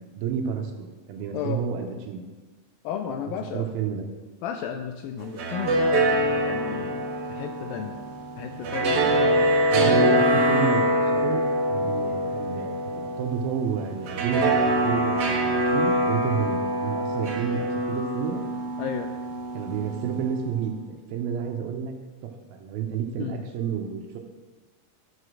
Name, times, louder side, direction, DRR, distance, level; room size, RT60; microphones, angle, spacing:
voice 1, 0.0-2.2 3.5-4.1 9.7-11.4 11.7-18.4 19.5-21.9 22.2-24.2, right 7 dB, 80° right, 4 dB, 2.5 m, -30 dB
voice 2, 2.8-3.7 4.4-7.0 7.3-8.0 8.4-10.2 18.8-19.1 23.2-23.4, left 8 dB, 85° left, 6 dB, 2.1 m, -33 dB
sound 1, 5.2-20.4, right 1 dB, 60° right, 1.6 m, -24 dB
12.0 x 4.9 x 6.2 m, 1.3 s
omnidirectional pair, 4.6 m